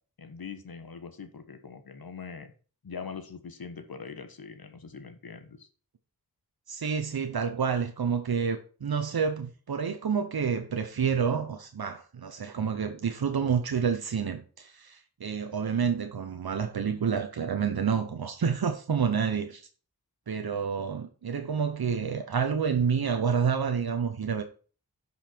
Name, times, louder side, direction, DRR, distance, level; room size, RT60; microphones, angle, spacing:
voice 1, 0.2-2.5 2.8-5.7, left 5 dB, 75° left, 1.4 m, -42 dB
voice 2, 6.7-19.7 20.3-24.4, right 6 dB, 75° right, 0.9 m, -29 dB
11.0 x 5.6 x 4.5 m
wide cardioid pair, 70°, 37 cm